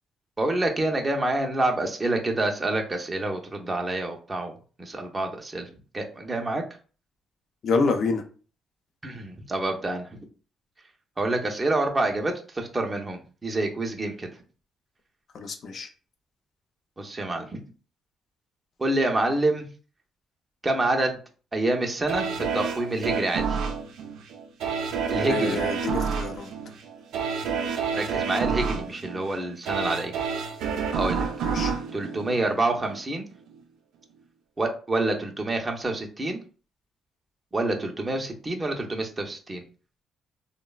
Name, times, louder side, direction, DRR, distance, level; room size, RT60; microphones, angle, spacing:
voice 1, 0.4-4.5 4.8-5.7 5.9-6.6 9.0-10.2 11.2-14.3 17.0-17.6 18.8-19.7 20.6-21.2 21.5-23.6 25.1-25.6 27.9-30.1 30.9-31.5 31.9-33.2 34.6-36.4 37.5-39.6, right 2 dB, 25° right, 2 dB, 0.5 m, -27 dB
voice 2, 7.6-8.2 15.3-15.9 25.2-26.5 31.4-31.7, left 4 dB, 60° left, 6 dB, 0.5 m, -27 dB
sound 1, 22.1-33.0 33.5-33.6, right 6 dB, 85° right, 0.4 m, -29 dB
3.0 x 2.0 x 2.3 m, 0.38 s
cardioid pair, 90°, 0 cm